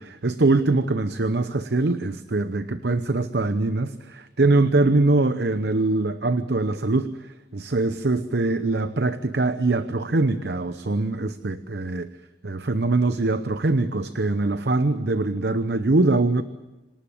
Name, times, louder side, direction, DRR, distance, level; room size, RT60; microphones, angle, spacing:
voice 1, 0.0-7.1 7.5-12.1 12.4-16.4, right 2 dB, 75° right, 11 dB, 0.8 m, -23 dB
26.0 x 19.0 x 8.7 m, 1.1 s
head